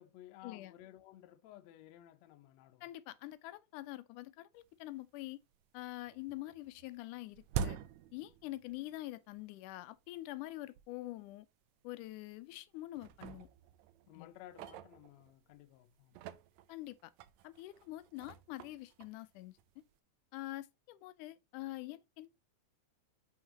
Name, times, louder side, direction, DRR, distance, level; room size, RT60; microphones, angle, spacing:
voice 1, 0.0-2.9 14.1-16.3, left 13 dB, 70° left, 1.9 m, -56 dB
voice 2, 2.8-5.4 5.7-7.8 8.1-11.5 11.8-13.5 14.2-14.3 16.7-17.1 17.4-19.5 20.3-22.4, left 17 dB, 90° left, 2.2 m, -45 dB
sound 1, 4.7-4.8 5.2-5.8 6.1-9.0 9.3-9.4 10.1-10.2 10.8-10.9 11.2-11.4 12.1-12.6 12.9-15.5 16.0-19.9, right 8 dB, 80° right, 1.7 m, -45 dB
9.9 x 4.7 x 2.9 m
omnidirectional pair, 3.5 m